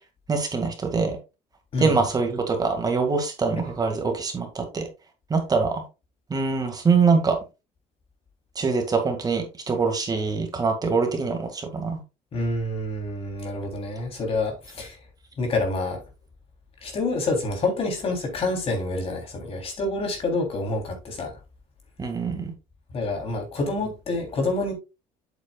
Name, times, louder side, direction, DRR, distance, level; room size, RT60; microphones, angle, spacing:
voice 1, 0.3-1.2 1.8-4.9 5.3-5.8 6.3-7.4 8.6-12.0 22.0-22.5, right 4 dB, 25° right, 2.0 m, -24 dB
voice 2, 12.3-15.0 15.4-16.0 16.8-21.4 22.9-24.7, left 2 dB, 40° left, 3.4 m, -27 dB
8.1 x 7.9 x 2.4 m
cardioid pair, 115°, 14 cm